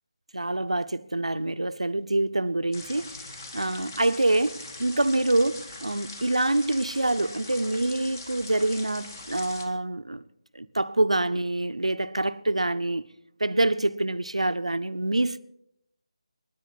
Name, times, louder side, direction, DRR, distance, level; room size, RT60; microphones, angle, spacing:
voice 1, 0.3-3.2 3.5-10.2 10.5-13.1 13.4-15.4, right 2 dB, 85° right, 0.7 m, -26 dB
sound 1, 2.7-9.7, left 2 dB, 35° left, 1.9 m, -42 dB
24.5 x 10.5 x 4.1 m
figure-of-eight pair, 160°, 3 cm